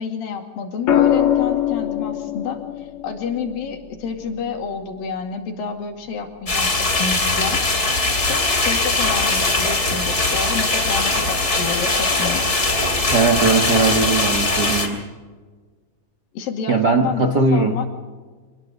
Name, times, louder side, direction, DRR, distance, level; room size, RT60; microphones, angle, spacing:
voice 1, 0.0-7.6 8.3-12.5 16.3-17.9, left 6 dB, 85° left, 4 dB, 4.1 m, -29 dB
sound 1, 0.9-5.0 6.7-7.1, left 10 dB, 50° left, 1.9 m, -23 dB
sound 2, 6.5-14.9, left 2 dB, 20° left, 2.8 m, -20 dB
voice 2, 13.1-15.0 16.7-17.8, right 4 dB, 60° right, 4 dB, 1.0 m, -19 dB
25.5 x 20.0 x 5.2 m, 1.4 s
omnidirectional pair, 4.0 m